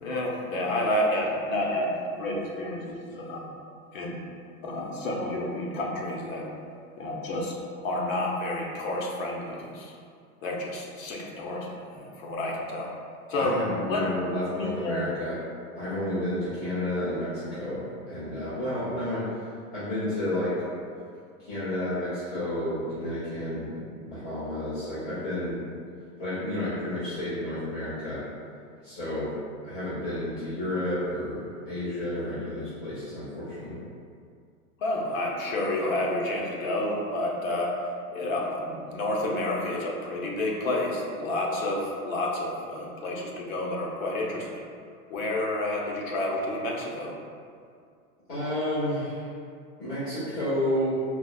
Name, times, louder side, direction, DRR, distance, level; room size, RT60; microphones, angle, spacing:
voice 1, 0.0-3.4 3.9-4.2 4.6-6.5 7.0-7.5 7.8-9.9 10.4-12.9 13.3-15.0 34.8-44.7 45.1-47.1, left 1 dB, 60° left, -2 dB, 0.7 m, -30 dB
voice 2, 13.3-15.4 15.7-19.2 19.7-20.5 21.4-25.6 26.2-28.2 28.8-29.3 29.6-33.8 48.3-49.3 49.8-50.9, left 1 dB, 40° left, -14 dB, 1.4 m, -31 dB
4.6 x 2.0 x 2.2 m, 2.2 s
supercardioid pair, 150°, 46 cm